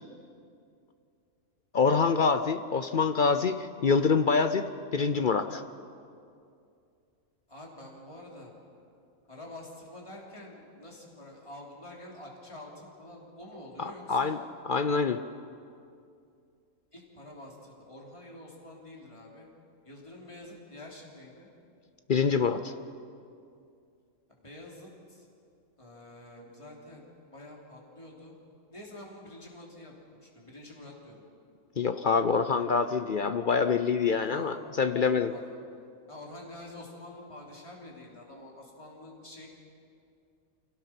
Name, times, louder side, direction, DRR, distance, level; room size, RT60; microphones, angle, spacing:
voice 1, 1.7-5.6 13.8-14.4 14.7-15.2 22.1-22.7 31.8-35.3, left 5 dB, 55° left, 10 dB, 0.6 m, -26 dB
voice 2, 7.5-8.5 9.3-14.3 16.9-19.5 19.8-21.5 24.3-25.3 25.8-28.3 28.7-29.9 30.2-31.2 34.2-35.5 36.1-39.5, left 1 dB, 20° left, -3 dB, 3.3 m, -47 dB
27.5 x 17.5 x 5.9 m, 2.5 s
omnidirectional pair, 1.5 m